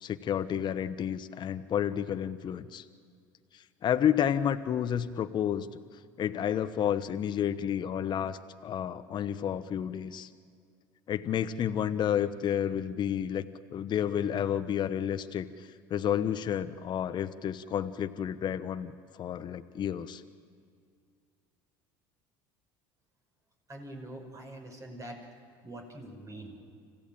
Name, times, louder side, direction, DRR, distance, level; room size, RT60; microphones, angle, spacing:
voice 1, 0.0-2.8 3.5-5.7 6.2-10.3 11.1-13.4 13.7-20.2, left 9 dB, 45° left, 10 dB, 1.1 m, -31 dB
voice 2, 23.7-25.2 25.6-26.7, right 1 dB, 30° right, 2 dB, 5.9 m, -44 dB
26.0 x 16.0 x 9.1 m, 2.2 s
hypercardioid pair, 80°, 11 cm